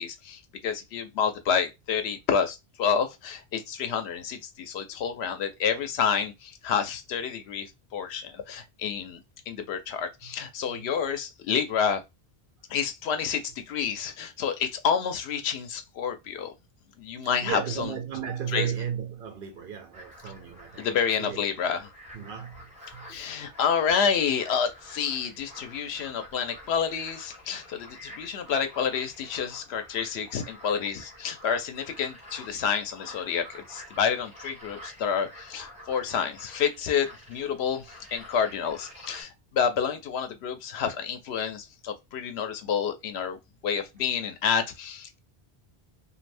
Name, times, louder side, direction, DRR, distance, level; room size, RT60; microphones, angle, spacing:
voice 1, 0.0-9.2 9.5-12.0 12.7-16.5 17.0-17.9 18.5-18.7 20.8-21.8 23.1-45.2, left 7 dB, 90° left, 0.9 m, -29 dB
voice 2, 17.4-21.4 22.1-23.3, right 8 dB, 65° right, 0.7 m, -35 dB
sound 1, 19.9-39.2, left 1 dB, 5° right, 1.0 m, -48 dB
2.5 x 2.3 x 3.3 m
omnidirectional pair, 1.1 m